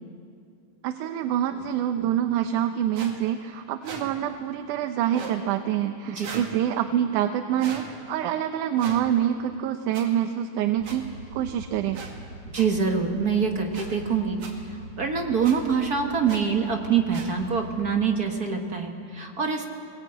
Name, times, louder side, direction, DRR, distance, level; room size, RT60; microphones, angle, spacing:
voice 1, 0.8-12.0, right 10 dB, 85° right, 7 dB, 2.2 m, -26 dB
sound 1, 2.9-3.1 3.8-4.0 5.1-5.4 6.2-6.5 7.6-7.8 8.8-9.0 9.9-10.0 10.8-11.0 11.9-12.1 12.5-12.7 13.7-13.9 14.4-14.5 15.4-15.6 16.3-16.4 17.1-17.3, right 5 dB, 65° right, 3.5 m, -38 dB
sound 2, 10.8-17.8, equal, 30° left, 6.3 m, -43 dB
voice 2, 12.5-14.4 15.0-19.6, right 6 dB, 45° right, 2 dB, 1.3 m, -25 dB
20.0 x 20.0 x 8.9 m, 2.4 s
omnidirectional pair, 3.5 m